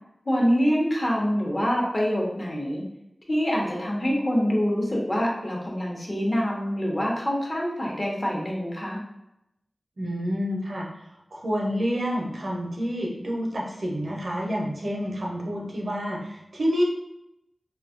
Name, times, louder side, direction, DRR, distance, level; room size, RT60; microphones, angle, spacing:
voice 1, 0.3-2.8 3.3-9.0, equal, 40° left, -2 dB, 0.8 m, -25 dB
voice 2, 10.0-16.8, equal, 75° right, -2 dB, 0.6 m, -28 dB
2.6 x 2.3 x 2.5 m, 0.84 s
wide cardioid pair, 55°, 0 cm